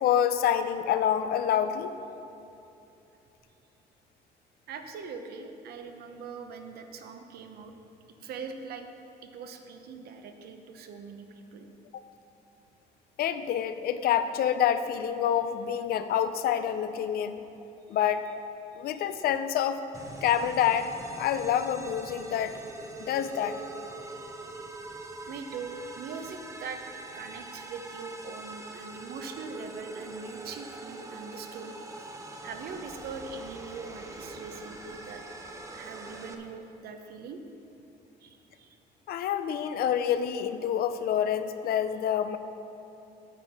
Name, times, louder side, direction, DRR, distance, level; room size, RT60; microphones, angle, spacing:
voice 1, 0.0-1.9 11.9-12.0 13.2-17.4 17.9-18.2 18.8-19.8 20.2-22.6 23.1-23.6 39.1-42.4, left 9 dB, 65° left, 10 dB, 0.6 m, -27 dB
voice 2, 4.7-7.7 8.2-8.9 9.2-11.7 17.9-18.0 18.7-19.1 25.3-26.8 27.1-31.8 32.4-35.2 35.7-37.4 38.2-38.8, right 5 dB, 65° right, 6 dB, 0.9 m, -42 dB
sound 1, 19.9-36.3, right 2 dB, 20° right, 0.8 m, -43 dB
9.2 x 5.3 x 7.4 m, 2.9 s
cardioid pair, 110°, 17 cm